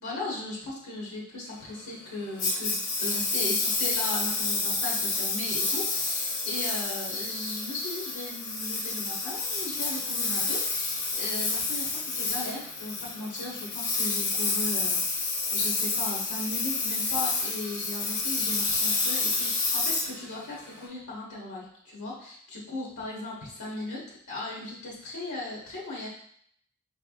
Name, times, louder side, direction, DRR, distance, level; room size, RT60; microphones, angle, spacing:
voice 1, 0.0-26.1, left 2 dB, 80° left, -4 dB, 1.3 m, -37 dB
Engine, 2.4-20.9, left 3 dB, 50° left, 0.9 m, -29 dB
5.7 x 3.4 x 2.4 m, 0.65 s
head